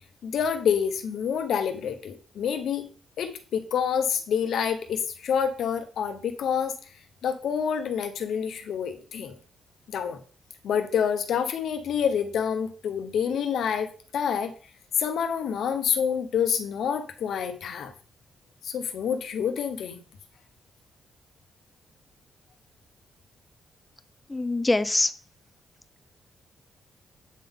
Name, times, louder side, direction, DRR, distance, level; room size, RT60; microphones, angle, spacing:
voice 1, 0.2-2.9 3.2-6.7 7.2-9.4 9.9-10.2 10.6-14.5 15.0-17.9 18.6-20.0, left 7 dB, 75° left, 8 dB, 1.0 m, -27 dB
voice 2, 24.3-25.1, left 2 dB, 15° left, 12 dB, 0.5 m, -24 dB
8.3 x 3.8 x 3.7 m, 0.40 s
cardioid pair, 100°, 0 cm